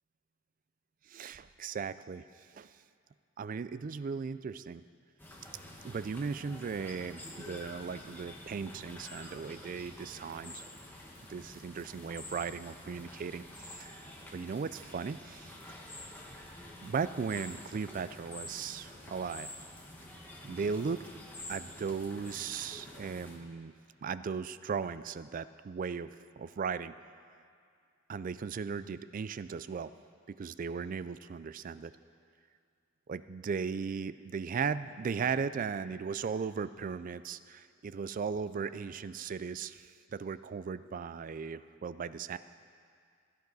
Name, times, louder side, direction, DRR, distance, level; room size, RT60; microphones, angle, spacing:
voice 1, 1.1-2.3 2.5-2.7 3.4-4.8 5.8-10.6 11.3-15.6 16.8-19.5 20.4-21.0 21.5-23.7 24.0-26.1 26.4-26.9 28.1-29.9 30.3-31.9 33.1-42.4, right 5 dB, 40° right, 14 dB, 0.3 m, -37 dB
sound 1, 5.2-23.4, left 1 dB, 10° left, 1.4 m, -48 dB
16.0 x 13.0 x 4.0 m, 2.2 s
head